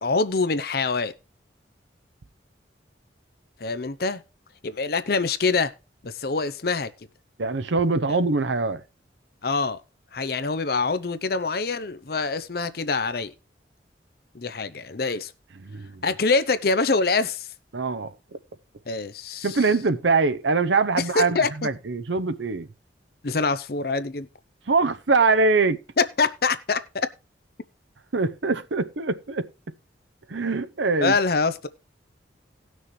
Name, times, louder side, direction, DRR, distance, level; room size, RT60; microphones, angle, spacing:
voice 1, 0.0-1.1 3.6-4.2 4.6-5.7 6.0-6.9 8.1-8.2 9.4-9.8 10.1-13.3 14.3-15.3 16.0-17.5 18.9-19.6 21.0-21.7 23.2-24.3 26.0-27.1 31.0-31.7, left 4 dB, 55° left, 0.7 m, -25 dB
voice 2, 7.4-8.8 15.6-16.0 17.7-18.1 19.4-22.7 24.7-25.8 28.1-29.5 30.3-31.1, right 4 dB, 80° right, 0.8 m, -23 dB
18.0 x 6.3 x 3.1 m
head